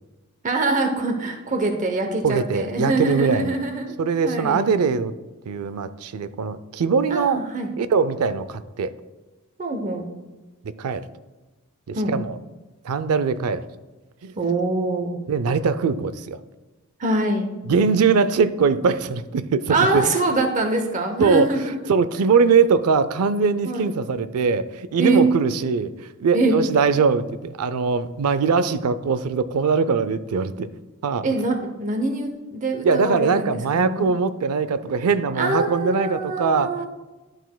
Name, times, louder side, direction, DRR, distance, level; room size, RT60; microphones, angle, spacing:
voice 1, 0.4-3.9 4.2-4.7 7.1-7.7 9.6-10.1 11.9-12.1 14.4-15.2 17.0-17.5 19.7-21.8 23.6-23.9 25.0-25.2 26.3-26.5 31.2-34.1 35.4-36.9, right 2 dB, 35° right, 4 dB, 0.7 m, -24 dB
voice 2, 2.2-3.6 4.0-5.1 5.5-7.4 7.8-8.9 10.8-11.0 11.9-12.4 12.8-13.6 14.2-14.3 15.3-16.4 17.7-20.0 21.2-30.7 31.0-31.3 32.8-36.7, right 5 dB, 75° right, 13 dB, 0.4 m, -21 dB
11.5 x 6.1 x 2.2 m, 1.1 s
head